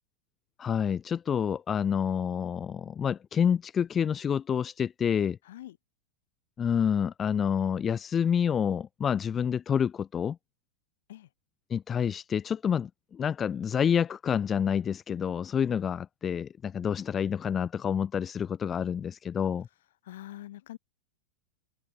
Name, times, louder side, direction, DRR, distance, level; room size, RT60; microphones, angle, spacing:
voice 1, 0.6-5.4 6.6-10.4 11.7-19.7, left 8 dB, 20° left, 0.6 m, -28 dB
voice 2, 5.4-5.8 11.1-11.3 20.1-20.8, left 14 dB, 55° left, 0.8 m, -44 dB
figure-of-eight pair, 90°, 0 cm